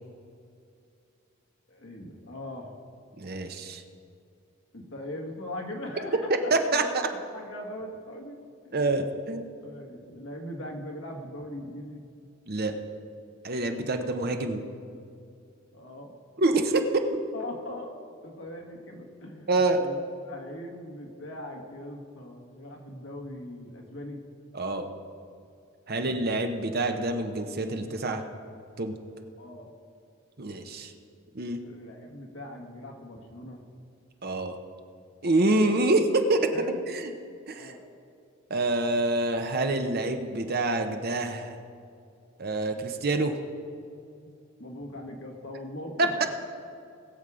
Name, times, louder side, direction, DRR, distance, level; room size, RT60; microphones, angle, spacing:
voice 1, 1.7-2.8 4.7-6.3 6.8-8.4 8.6-8.7 9.6-12.0 15.7-16.2 17.3-20.0 20.3-24.2 29.4-29.7 31.6-33.6 35.5-35.7 36.5-36.8 37.5-37.8 44.6-46.3, left 1 dB, 65° left, 2 dB, 1.8 m, -40 dB
voice 2, 3.2-3.8 6.5-7.1 8.7-9.5 12.5-12.7 13.4-14.6 16.4-16.8 19.5-19.8 24.5-24.9 25.9-28.2 28.8-29.0 30.4-30.9 31.3-31.6 34.2-34.6 35.2-36.5 36.9-37.1 37.5-37.7 38.5-41.6 42.4-43.4 46.0-46.3, right 2 dB, 45° right, 6 dB, 0.9 m, -26 dB
20.5 x 7.3 x 5.0 m, 2.5 s
head